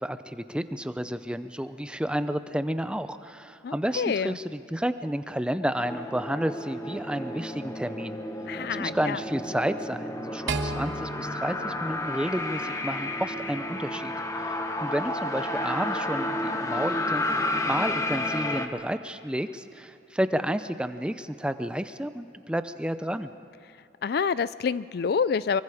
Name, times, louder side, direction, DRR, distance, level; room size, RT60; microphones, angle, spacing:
voice 1, 0.0-8.2 8.7-23.3, equal, 5° right, 11 dB, 0.5 m, -31 dB
voice 2, 3.6-4.3 8.5-9.2 24.0-25.6, left 6 dB, 55° left, 17 dB, 0.4 m, -27 dB
sound 1, 5.8-18.7, left 1 dB, 20° left, 1.1 m, -31 dB
sound 2, 10.5-12.9, right 3 dB, 85° right, 1.3 m, -34 dB
24.5 x 23.5 x 5.0 m, 2.8 s
head